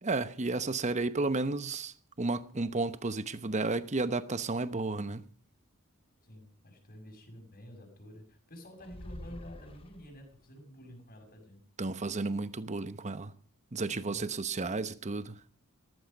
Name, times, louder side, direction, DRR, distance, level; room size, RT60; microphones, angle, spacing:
voice 1, 0.0-5.2 11.8-13.3 13.7-15.4, right 3 dB, 30° right, 0.9 m, -32 dB
voice 2, 6.2-11.6 13.9-14.3, equal, 40° left, 6.3 m, -50 dB
sound 1, 8.8-10.4, left 1 dB, 25° left, 1.0 m, -46 dB
18.5 x 14.5 x 5.3 m
head